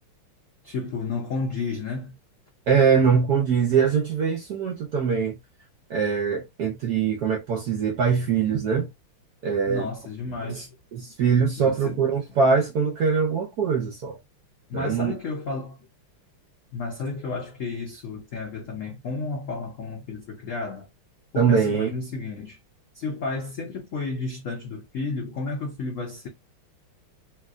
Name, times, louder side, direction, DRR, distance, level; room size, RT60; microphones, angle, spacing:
voice 1, 0.6-2.2 9.7-10.8 11.6-12.0 14.7-15.8 16.7-20.9 21.3-22.6 22.9-26.3, left 4 dB, 75° left, 0.7 m, -32 dB
voice 2, 2.7-5.4 5.9-8.9 9.4-9.9 10.5-10.6 10.9-14.2 14.7-15.1 21.4-21.9, right 6 dB, 75° right, 0.9 m, -22 dB
3.3 x 2.8 x 2.4 m
omnidirectional pair, 2.4 m